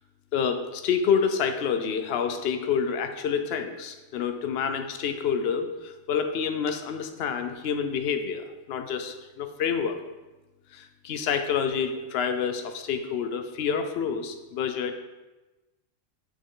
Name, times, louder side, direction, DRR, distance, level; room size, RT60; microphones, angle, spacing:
voice 1, 0.3-10.0 10.7-14.9, left 6 dB, 60° left, 7 dB, 0.7 m, -28 dB
6.8 x 5.3 x 3.8 m, 1.1 s
omnidirectional pair, 1.4 m